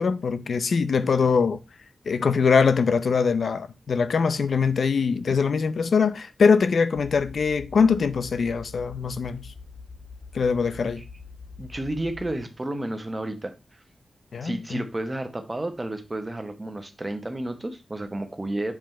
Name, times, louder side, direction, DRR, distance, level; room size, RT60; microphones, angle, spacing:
voice 1, 0.0-1.6 2.1-9.5 10.3-11.0 14.3-14.8, left 5 dB, 65° left, 0.6 m, -22 dB
sound 1, 6.9-12.3, left 4 dB, 25° left, 1.3 m, -44 dB
voice 2, 11.6-13.5 14.4-18.7, right 1 dB, 20° right, 1.0 m, -31 dB
7.8 x 4.7 x 4.4 m
wide cardioid pair, 175°, 0 cm